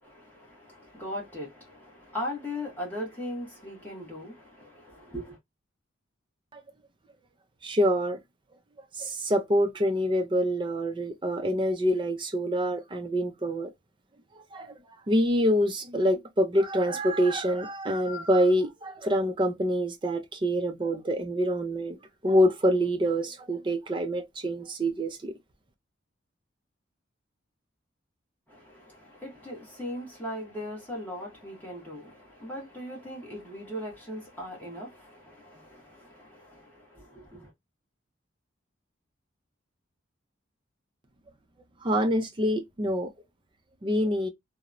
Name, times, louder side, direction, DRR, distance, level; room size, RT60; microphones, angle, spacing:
voice 1, 0.0-5.4 28.5-37.5, left 1 dB, 10° left, 1.0 m, -39 dB
voice 2, 7.6-8.2 9.0-13.7 14.5-14.7 15.1-22.0 22.2-25.3 41.8-43.1 43.8-44.3, equal, 25° right, 0.4 m, -26 dB
2.9 x 2.0 x 2.4 m
head